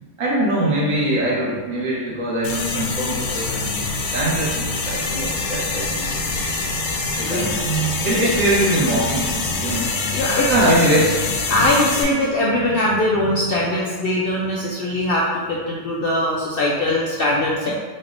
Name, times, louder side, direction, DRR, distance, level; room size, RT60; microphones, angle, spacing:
voice 1, 0.2-6.2 7.1-9.9 10.5-11.2 11.5-11.6, right 1 dB, 75° right, -4 dB, 1.3 m, -22 dB
sound 1, 2.4-12.0, left 3 dB, 85° left, 1.1 m, -25 dB
voice 2, 10.1-10.5 11.5-17.7, left 1 dB, 65° left, -4 dB, 0.5 m, -21 dB
4.2 x 3.3 x 2.5 m, 1.4 s
omnidirectional pair, 1.4 m